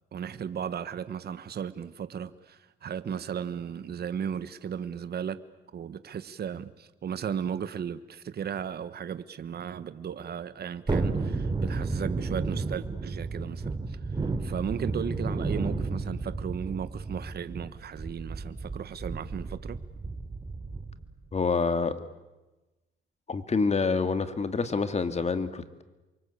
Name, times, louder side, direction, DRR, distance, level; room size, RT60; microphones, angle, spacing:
voice 1, 0.1-5.4 5.7-14.0 14.4-19.8, right 8 dB, 55° right, 1.4 m, -35 dB
Thunderstorm, 10.9-21.1 21.4-21.5, right 3 dB, 25° right, 3.4 m, -32 dB
voice 2, 21.3-21.9 23.3-25.8, left 4 dB, 35° left, 2.4 m, -27 dB
28.5 x 24.0 x 8.5 m
cardioid pair, 90°, 20 cm